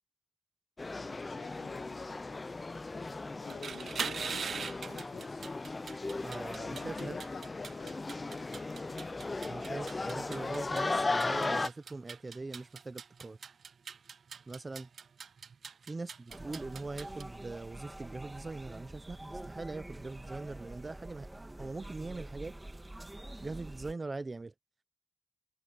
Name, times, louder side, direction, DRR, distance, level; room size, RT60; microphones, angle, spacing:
sound 1, 0.8-11.7, left 3 dB, 30° left, 0.5 m, -36 dB
voice 1, 0.9-5.5 6.6-8.6, left 6 dB, 85° left, 2.1 m, -50 dB
sound 2, 3.5-17.2, right 6 dB, 70° right, 0.3 m, -43 dB
voice 2, 6.2-7.2 9.5-13.4 14.5-14.9 15.8-21.3 21.6-22.6 23.4-24.5, right 3 dB, 30° right, 0.7 m, -41 dB
sound 3, 16.3-23.9, right 1 dB, 15° right, 1.6 m, -46 dB
wide cardioid pair, 135°, 0 cm